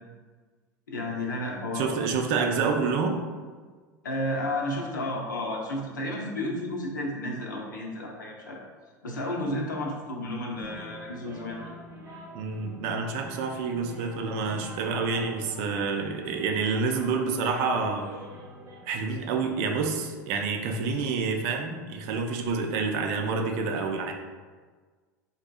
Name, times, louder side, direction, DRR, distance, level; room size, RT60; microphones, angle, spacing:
voice 1, 0.9-1.9 4.0-8.6 9.0-11.6, left 1 dB, 80° left, -1 dB, 0.6 m, -32 dB
voice 2, 1.7-3.2 12.3-18.1 18.9-24.1, right 4 dB, 50° right, 4 dB, 0.4 m, -28 dB
sound 1, 10.5-18.8, equal, 25° right, 0.8 m, -45 dB
3.6 x 2.7 x 2.3 m, 1.5 s
figure-of-eight pair, 80°, 10 cm